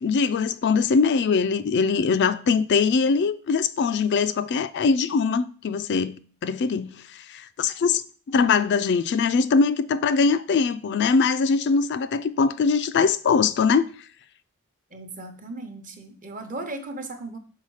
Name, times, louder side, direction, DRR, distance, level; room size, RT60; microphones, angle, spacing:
voice 1, 0.0-8.0 8.3-13.9, left 5 dB, 50° left, 0.3 m, -22 dB
voice 2, 14.9-17.4, right 2 dB, 35° right, 0.9 m, -36 dB
5.7 x 4.5 x 4.8 m
head